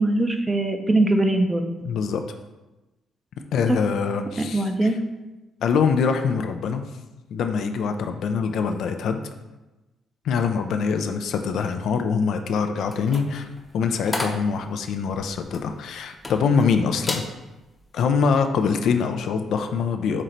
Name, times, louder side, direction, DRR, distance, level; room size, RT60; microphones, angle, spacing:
voice 1, 0.0-1.7 4.5-5.0, right 2 dB, 20° right, 5 dB, 0.5 m, -21 dB
voice 2, 1.8-2.2 3.5-5.0 5.6-6.8 7.3-9.2 10.2-13.5 13.7-17.2 17.9-20.2, left 5 dB, 75° left, 6 dB, 0.4 m, -24 dB
sound 1, 12.8-16.7 17.0-17.3 17.8-18.0, left 2 dB, 20° left, 0.7 m, -33 dB
4.2 x 3.2 x 3.8 m, 1.1 s
cardioid pair, 90°, 0 cm